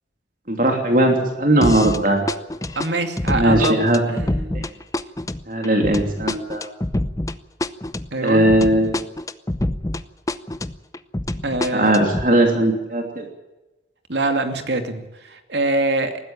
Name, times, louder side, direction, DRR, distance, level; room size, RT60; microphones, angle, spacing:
voice 1, 0.5-2.3 3.3-4.7 5.5-6.6 8.2-9.0 11.7-13.2, right 1 dB, 50° right, 3 dB, 3.0 m, -18 dB
sound 1, 1.6-2.0 2.3-10.0 10.3-12.3, left 1 dB, 20° left, 0.7 m, -26 dB
voice 2, 2.8-4.2 8.1-8.5 11.4-11.9 14.1-16.2, right 2 dB, 80° right, 7 dB, 2.5 m, -24 dB
20.5 x 15.0 x 8.7 m, 1.0 s
head